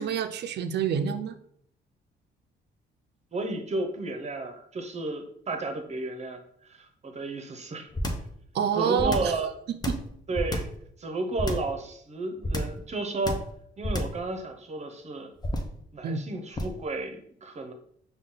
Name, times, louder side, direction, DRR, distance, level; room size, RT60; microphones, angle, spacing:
voice 1, 0.0-1.3 8.5-9.3 9.9-10.0 16.0-16.2, right 7 dB, 60° right, 9 dB, 0.5 m, -27 dB
voice 2, 3.3-7.9 8.7-9.5 10.3-10.6 11.0-13.4 13.8-15.3 15.9-17.7, right 2 dB, 35° right, 5 dB, 0.8 m, -33 dB
sound 1, 7.9-8.3 9.0-9.4 9.8-10.8 11.4-11.8 12.4-12.8 13.3-13.6 13.8-14.2 15.4-15.8 16.6-16.8, left 1 dB, 20° left, 0.7 m, -30 dB
5.3 x 2.3 x 3.8 m, 0.67 s
cardioid pair, 90°, 20 cm